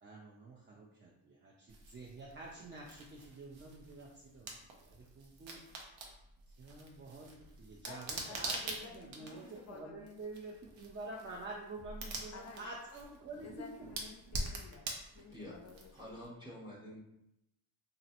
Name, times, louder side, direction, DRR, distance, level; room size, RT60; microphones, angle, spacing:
voice 1, 0.0-5.6 6.6-13.6, right 2 dB, 25° right, -2 dB, 0.4 m, -48 dB
sound 1, 1.7-16.2, right 2 dB, 65° right, 0.7 m, -46 dB
voice 2, 7.8-10.2 12.3-12.7 13.4-16.2, left 5 dB, 35° left, 3 dB, 0.5 m, -53 dB
voice 3, 15.9-17.0, equal, 10° right, -4 dB, 0.7 m, -48 dB
3.0 x 2.5 x 2.8 m, 0.85 s
cardioid pair, 85°, 48 cm